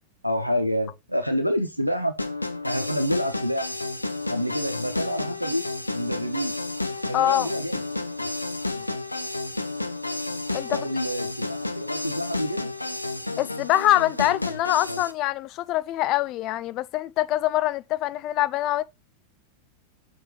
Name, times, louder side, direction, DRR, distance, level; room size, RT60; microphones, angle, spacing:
voice 1, 0.2-2.2 2.6-3.7 4.3-5.6 5.9-6.5 7.1-7.8 8.2-8.3 8.7-8.9 10.7-12.7, equal, 90° right, 1.0 m, -28 dB
sound 1, 2.2-15.1, left 2 dB, 85° left, 0.7 m, -31 dB
voice 2, 7.1-7.5 10.5-10.8 13.4-18.8, left 14 dB, 40° left, 0.4 m, -24 dB
6.6 x 3.5 x 5.2 m
figure-of-eight pair, 90°, 0 cm